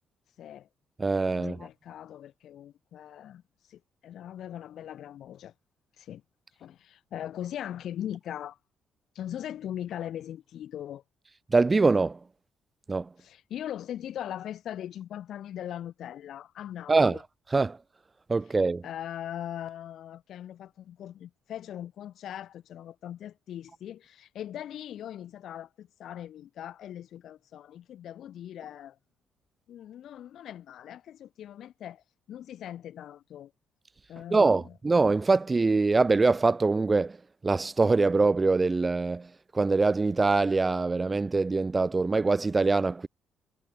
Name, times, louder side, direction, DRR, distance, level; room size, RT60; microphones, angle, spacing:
voice 1, 0.4-0.7 1.4-3.4 3.7-5.5 6.0-6.2 6.6-8.6 9.1-11.0 13.2-17.2 18.8-29.0 29.7-33.5 34.1-34.8, left 11 dB, 70° left, 2.5 m, -40 dB
voice 2, 1.0-1.6 11.5-12.2 12.9-13.1 16.9-17.2 17.5-17.8 18.3-18.8 34.3-37.2 37.4-39.3 39.5-43.1, right 3 dB, 25° right, 0.6 m, -23 dB
cardioid pair, 90°, 0 cm